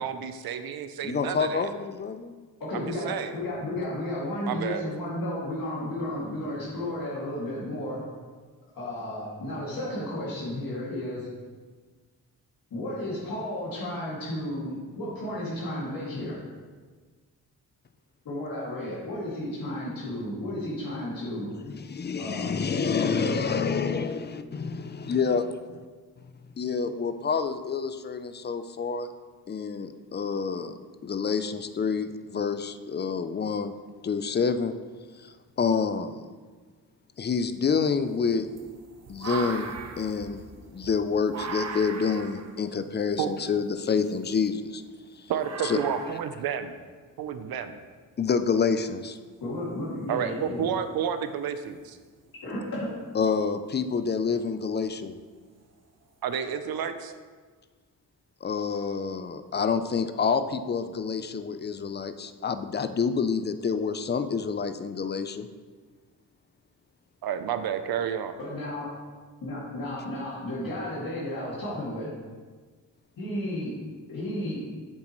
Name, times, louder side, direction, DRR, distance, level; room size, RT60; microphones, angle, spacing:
voice 1, 0.0-1.7 2.7-3.4 4.4-4.8 43.2-43.3 45.3-46.8 47.2-47.8 50.1-52.0 56.2-57.1 67.2-68.3, right 8 dB, 85° right, 9 dB, 0.6 m, -30 dB
voice 2, 1.0-2.3 21.7-25.6 26.6-29.1 29.5-30.7 31.0-33.7 34.0-34.7 35.2-36.2 37.2-38.5 39.1-40.4 40.7-44.8 45.2-45.3 45.6-45.8 48.2-49.2 53.1-55.2 58.4-65.5, left 5 dB, 30° left, 10 dB, 0.4 m, -28 dB
voice 3, 2.6-8.0 8.7-11.3 12.7-16.4 18.2-21.5 22.2-22.5 23.0-23.4 49.4-50.7 52.4-52.9 68.4-68.9 69.4-72.1 73.2-73.7 74.1-74.6, left 1 dB, 70° left, -8 dB, 2.3 m, -33 dB
sound 1, 37.6-45.0 45.4-46.3 47.6-47.7 49.0-49.1 51.8-52.0 52.5-52.8 53.5-54.0 54.6-54.7 55.7-55.8 56.2-56.4, right 4 dB, 45° right, 0.8 m, -40 dB
7.7 x 7.4 x 3.1 m, 1.5 s
wide cardioid pair, 110°, 35 cm